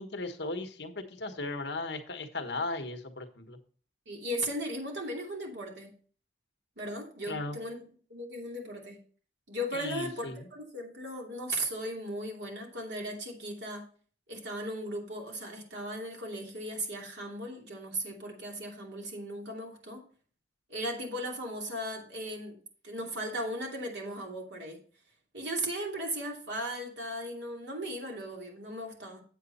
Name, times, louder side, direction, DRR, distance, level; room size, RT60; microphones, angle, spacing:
voice 1, 0.0-3.6 7.3-7.6 9.7-10.5, left 2 dB, 70° left, 7 dB, 1.2 m, -37 dB
voice 2, 4.1-5.9 6.8-9.0 9.5-13.9 14.3-20.0 20.7-22.6 22.8-24.8 25.3-29.2, right 1 dB, 75° right, 0 dB, 2.8 m, -37 dB
8.1 x 7.9 x 4.1 m, 0.42 s
head